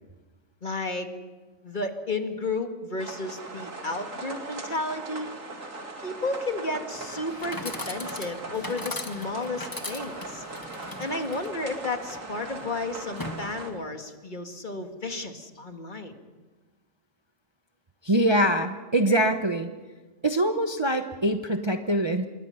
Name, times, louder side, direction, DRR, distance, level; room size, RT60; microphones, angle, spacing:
voice 1, 0.6-1.1 1.6-5.3 6.0-10.4 11.0-16.2, left 2 dB, 35° left, 5 dB, 2.0 m, -32 dB
sound 1, 3.0-13.7, right 3 dB, 80° right, 2.8 m, -39 dB
Chatter / Coin (dropping), 6.9-14.0, left 2 dB, 15° left, 1.3 m, -40 dB
voice 2, 18.0-19.7 20.2-22.2, right 1 dB, 25° right, 6 dB, 0.9 m, -24 dB
27.0 x 22.5 x 5.7 m, 1.2 s
omnidirectional pair, 1.3 m